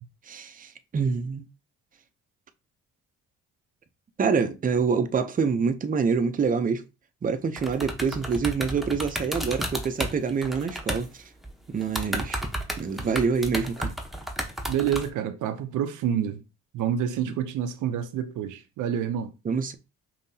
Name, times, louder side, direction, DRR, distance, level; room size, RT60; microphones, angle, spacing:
voice 1, 0.3-1.4 4.2-6.8 7.2-11.2 11.7-12.4 12.8-13.9 17.3-17.4 19.5-19.7, right 5 dB, 30° right, 0.6 m, -26 dB
sound 1, 7.6-11.1 11.4-11.5 11.8-15.1, right 1 dB, ahead, 0.9 m, -32 dB
voice 2, 14.7-16.4 16.7-19.3, right 9 dB, 85° right, 0.6 m, -28 dB
5.3 x 2.8 x 2.7 m
cardioid pair, 90°, 30 cm